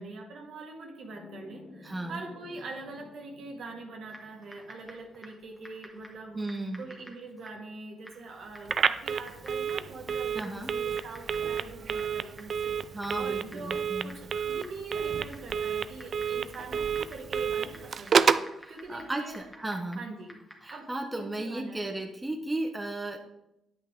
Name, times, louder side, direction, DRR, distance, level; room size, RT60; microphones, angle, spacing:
voice 1, 0.0-6.5 6.8-18.3 18.7-19.4 20.0-20.4 20.7-21.8, right 3 dB, 65° right, 1 dB, 2.0 m, -44 dB
sound 1, 1.1-11.3, left 3 dB, 65° left, 2.2 m, -56 dB
voice 2, 1.8-2.2 6.3-6.9 10.3-10.7 12.9-14.1 18.6-20.0 20.6-23.2, right 2 dB, 15° right, 3 dB, 1.1 m, -35 dB
Typing, 4.1-21.0, equal, ahead, 1.9 m, -54 dB
Telephone, 8.7-18.5, right 6 dB, 50° right, 0.4 m, -30 dB
9.9 x 8.4 x 3.8 m, 0.86 s
cardioid pair, 90°, 0 cm